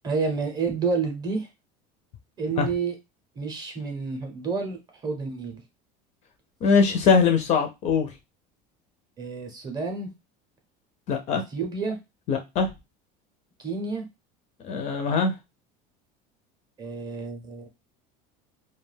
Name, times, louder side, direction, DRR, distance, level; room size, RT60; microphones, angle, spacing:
voice 1, 0.0-1.5 2.4-2.9 3.4-5.6 9.2-10.1 11.3-12.0 13.6-14.0 16.8-17.7, right 4 dB, 20° right, 4 dB, 0.6 m, -29 dB
voice 2, 6.6-8.1 11.1-11.4 12.3-12.7 14.6-15.3, left 5 dB, 35° left, 6 dB, 0.4 m, -22 dB
2.4 x 2.2 x 3.2 m, 0.23 s
cardioid pair, 165°, 19 cm